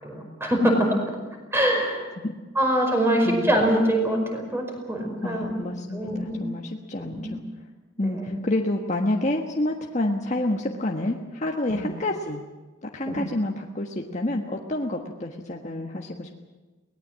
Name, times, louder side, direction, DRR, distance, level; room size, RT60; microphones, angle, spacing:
voice 1, 0.0-1.0 1.5-2.0 2.6-5.6 5.9-6.5 7.0-7.3 8.0-8.3 11.7-11.9 13.1-13.2, equal, 15° right, 2 dB, 5.2 m, -24 dB
voice 2, 5.2-7.4 8.0-12.4 12.8-16.3, left 1 dB, 40° left, 1 dB, 1.4 m, -28 dB
23.0 x 19.0 x 7.6 m, 1.2 s
head